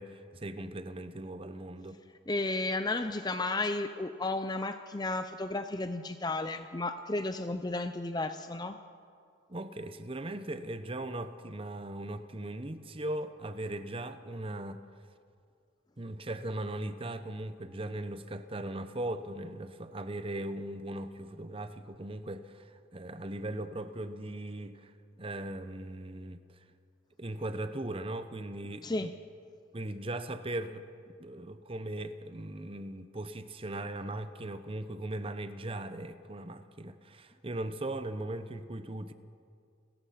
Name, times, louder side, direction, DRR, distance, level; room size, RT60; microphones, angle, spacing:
voice 1, 0.0-2.0 9.5-14.8 16.0-24.9 25.2-26.6 27.2-29.1 29.7-30.9 31.2-39.1, right 1 dB, 30° right, 10 dB, 0.8 m, -39 dB
voice 2, 2.3-8.8 28.8-29.1, left 2 dB, 20° left, 9 dB, 0.5 m, -33 dB
30.0 x 15.0 x 5.8 m, 2.3 s
head